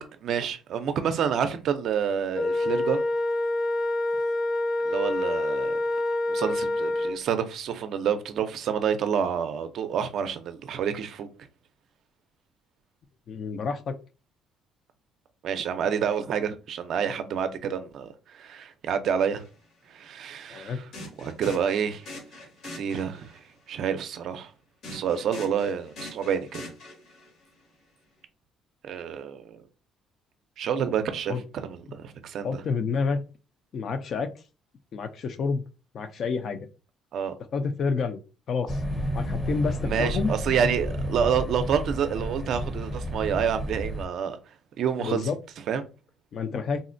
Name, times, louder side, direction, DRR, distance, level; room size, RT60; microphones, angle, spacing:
voice 1, 0.0-3.0 4.9-5.8 6.3-11.3 15.4-19.4 19.9-20.9 21.2-22.1 22.6-24.5 24.9-26.7 28.8-29.6 30.6-32.6 37.1-37.4 39.8-44.4 44.8-45.3 45.7-45.8, right 7 dB, 60° right, 0.4 m, -28 dB
Wind instrument woodwind instrument, 2.3-7.2, left 2 dB, 90° left, 0.9 m, -27 dB
voice 2, 13.3-14.0 20.5-20.8 31.3-31.4 32.4-33.2 33.7-34.3 34.9-35.6 35.9-36.6 37.5-38.2 38.5-38.8 39.1-40.3 45.0-45.4 46.3-46.8, left 5 dB, 50° left, 0.4 m, -28 dB
sound 1, 19.3-19.5 20.9-23.4 24.8-27.4, left 1 dB, 70° left, 1.7 m, -43 dB
sound 2, 38.7-44.1, equal, 10° left, 0.6 m, -31 dB
3.7 x 2.1 x 2.5 m
cardioid pair, 120°, 0 cm